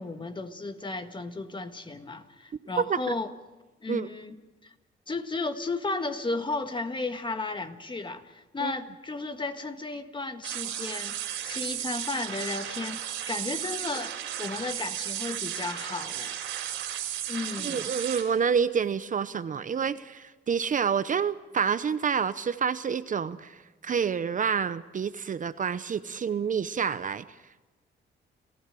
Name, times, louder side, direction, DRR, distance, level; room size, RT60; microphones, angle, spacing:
voice 1, 0.0-3.3 3.8-4.7 5.1-16.8 17.3-17.9, left 3 dB, 25° left, 1.7 m, -34 dB
sound 1, 10.4-18.2, right 11 dB, 90° right, 4.2 m, -34 dB
voice 2, 17.6-27.3, right 6 dB, 40° right, 0.8 m, -28 dB
30.0 x 15.0 x 7.7 m
cardioid pair, 90°, 20 cm